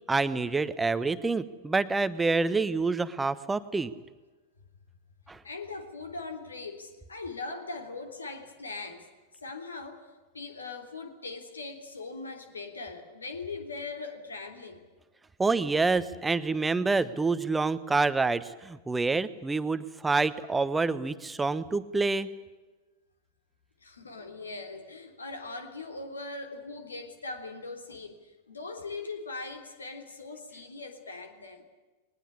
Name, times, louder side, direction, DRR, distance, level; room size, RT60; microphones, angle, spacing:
voice 1, 0.1-3.9 5.3-5.4 15.4-22.3, right 3 dB, 10° right, 14 dB, 1.2 m, -27 dB
voice 2, 5.4-9.1 9.4-10.1 10.3-14.8 23.8-31.6, left 3 dB, 75° left, 6 dB, 3.3 m, -40 dB
21.0 x 19.5 x 10.0 m, 1.2 s
figure-of-eight pair, 90°, 0 cm